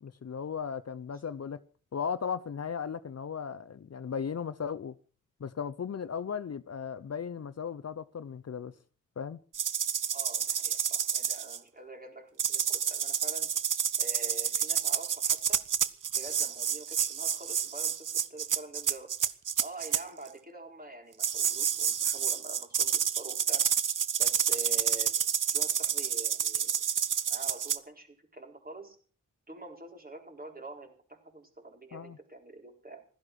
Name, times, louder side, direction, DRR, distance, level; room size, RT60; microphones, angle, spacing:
voice 1, 0.0-1.6 1.9-4.9 5.4-8.7 9.2-9.4 31.9-32.2, left 7 dB, 50° left, 0.7 m, -36 dB
sound 1, 9.5-11.6 12.4-20.0 21.2-27.8, right 8 dB, 75° right, 0.9 m, -29 dB
voice 2, 10.1-13.5 14.0-15.6 16.1-19.2 19.6-23.7 24.2-25.2 25.5-26.9 27.3-29.0 29.5-33.1, right 2 dB, 30° right, 4.5 m, -46 dB
16.0 x 13.0 x 6.3 m
wide cardioid pair, 100°, 32 cm